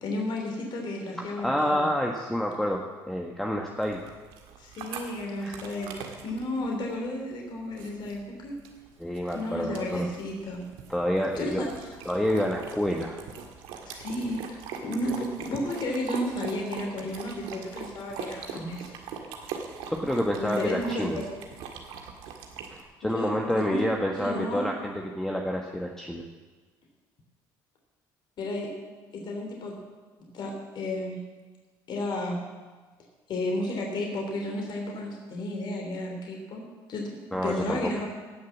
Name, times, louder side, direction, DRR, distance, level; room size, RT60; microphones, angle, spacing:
voice 1, 0.0-1.8 4.6-6.0 6.2-8.5 9.3-10.6 11.3-11.7 13.8-14.4 14.8-18.9 20.4-21.1 23.1-23.8 24.2-24.6 28.4-28.7 29.1-29.8 30.3-31.2 31.9-32.4 33.3-36.6 36.9-37.1 37.4-38.1, left 1 dB, 55° left, 0 dB, 3.2 m, -32 dB
voice 2, 1.2-4.0 5.4-5.6 9.0-10.1 10.9-11.6 12.0-13.2 19.9-21.2 22.7-26.2 37.3-38.0, equal, 5° left, 0 dB, 1.4 m, -28 dB
sound 1, 3.8-22.8, right 6 dB, 80° right, 1.8 m, -42 dB
17.5 x 6.5 x 7.3 m, 1.4 s
supercardioid pair, 80°, 9 cm